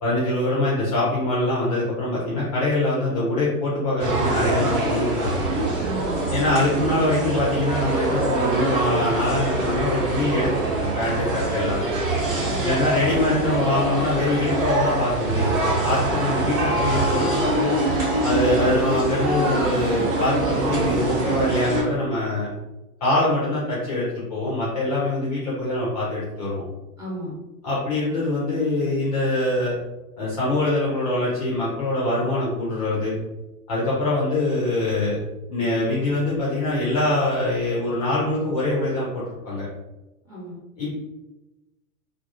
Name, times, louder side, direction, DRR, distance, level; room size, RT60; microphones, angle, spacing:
voice 1, 0.0-5.4 6.3-10.5 10.8-11.8 12.6-15.5 15.8-17.7 18.2-22.5 23.0-26.6 27.6-29.8 30.2-33.1 33.7-35.2 35.5-39.7 40.8-40.9, left 2 dB, 25° left, -6 dB, 0.4 m, -24 dB
sound 1, 4.0-21.8, right 2 dB, 60° right, 1.0 m, -24 dB
voice 2, 5.8-6.2 12.5-12.8 16.1-16.5 27.0-27.4 40.2-40.6, equal, 10° right, -7 dB, 0.7 m, -35 dB
Gong, 16.6-20.1, left 1 dB, 80° right, 0.8 m, -32 dB
2.2 x 2.0 x 2.7 m, 1.0 s
figure-of-eight pair, 105°, 45 cm